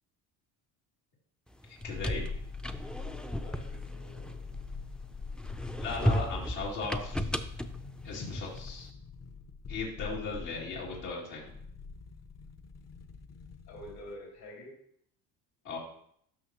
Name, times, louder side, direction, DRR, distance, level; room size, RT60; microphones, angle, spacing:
sound 1, 1.6-4.9 5.4-8.8, equal, ahead, 0.4 m, -35 dB
voice 1, 1.7-2.3 5.8-7.3 8.0-8.9 9.7-11.4 15.6-15.8, left 4 dB, 85° left, -5 dB, 2.7 m, -37 dB
sound 2, 1.8-14.2 14.4-14.5, left 4 dB, 40° left, 0.8 m, -43 dB
voice 2, 3.4-4.5 5.6-5.8 13.7-14.8, equal, 70° left, -2 dB, 2.7 m, -48 dB
13.0 x 5.4 x 2.9 m, 0.68 s
cardioid pair, 95°, 40 cm